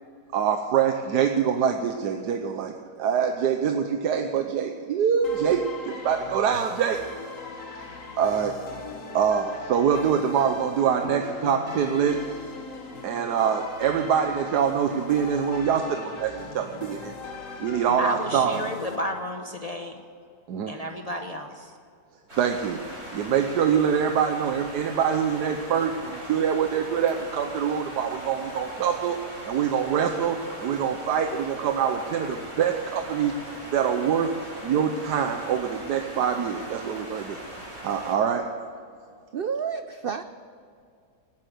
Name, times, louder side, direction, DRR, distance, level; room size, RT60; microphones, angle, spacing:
voice 1, 0.3-7.0 8.2-8.5 9.1-12.2 13.0-17.1 17.6-18.6 20.5-20.7 22.4-22.8 23.1-29.2 29.4-33.3 33.7-34.3 34.6-37.4 37.8-38.4, right 7 dB, 90° right, 5 dB, 1.4 m, -25 dB
sound 1, 5.2-19.0, left 4 dB, 55° left, 2.0 m, -39 dB
voice 2, 18.0-20.0 20.7-21.7, equal, 30° left, 3 dB, 0.9 m, -32 dB
sound 2, 22.3-38.1, equal, 45° right, 5.2 m, -40 dB
voice 3, 39.3-40.2, right 6 dB, 65° right, 10 dB, 0.5 m, -30 dB
18.0 x 10.0 x 7.8 m, 2.3 s
omnidirectional pair, 1.7 m